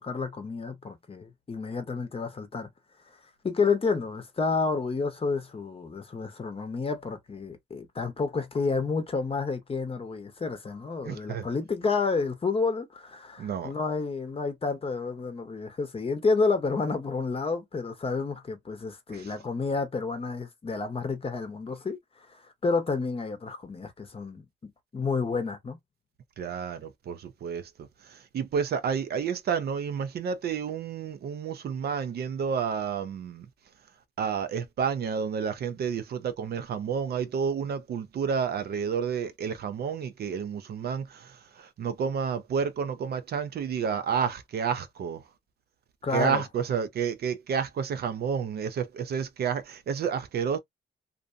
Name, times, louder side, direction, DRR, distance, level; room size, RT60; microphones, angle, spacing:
voice 1, 0.0-2.7 3.4-25.8 46.0-46.4, left 4 dB, 30° left, 0.8 m, -30 dB
voice 2, 11.0-11.5 13.4-13.7 19.1-19.3 26.4-27.7 28.0-33.5 34.2-45.2 46.1-50.6, right 7 dB, 55° right, 0.5 m, -30 dB
2.5 x 2.1 x 2.5 m
cardioid pair, 90°, 20 cm